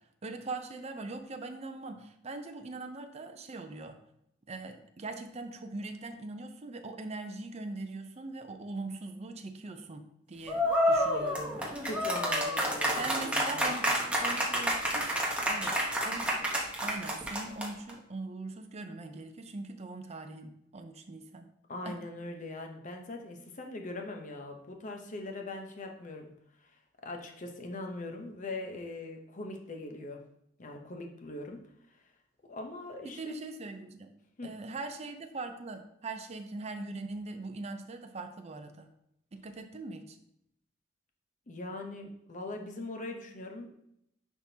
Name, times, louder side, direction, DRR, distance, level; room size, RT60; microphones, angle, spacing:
voice 1, 0.2-4.0 4.5-11.8 12.9-15.0 15.5-15.8 16.0-16.5 16.8-21.5 21.8-22.0 33.0-34.1 34.4-38.9 39.3-40.2, right 3 dB, 35° right, 6 dB, 0.5 m, -41 dB
sound 1, 10.5-17.9, equal, 5° right, 1.0 m, -29 dB
voice 2, 11.8-13.7 21.7-26.3 27.0-30.2 30.6-31.6 32.5-33.3 34.4-34.5 41.5-43.7, left 2 dB, 40° left, 3 dB, 0.8 m, -41 dB
10.0 x 3.6 x 2.8 m, 0.79 s
head